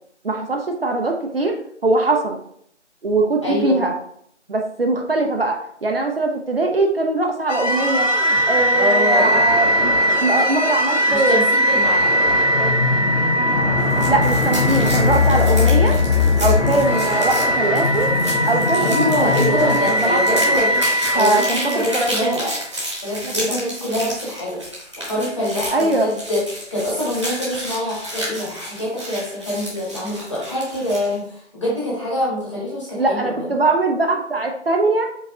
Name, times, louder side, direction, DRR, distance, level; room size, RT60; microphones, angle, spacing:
voice 1, 0.2-2.4 3.0-3.9 4.5-8.1 8.5-9.9 10.2-11.4 12.6-12.7 14.1-16.0 16.4-18.1 18.5-20.6 21.2-22.4 23.2-23.5 25.7-26.1 32.9-35.1, right 2 dB, 55° right, 3 dB, 0.6 m, -21 dB
voice 2, 3.4-3.8 8.7-9.4 11.1-12.1 15.3-15.7 18.8-20.8 21.1-22.6 23.0-24.6 25.0-26.4 26.7-33.5, left 1 dB, 25° left, -7 dB, 1.4 m, -25 dB
sound 1, 7.5-22.6, left 1 dB, 85° left, 0.8 m, -19 dB
sound 2, 13.8-31.2, equal, 25° right, 1.0 m, -31 dB
4.7 x 3.9 x 2.3 m, 0.66 s
figure-of-eight pair, 170°, 36 cm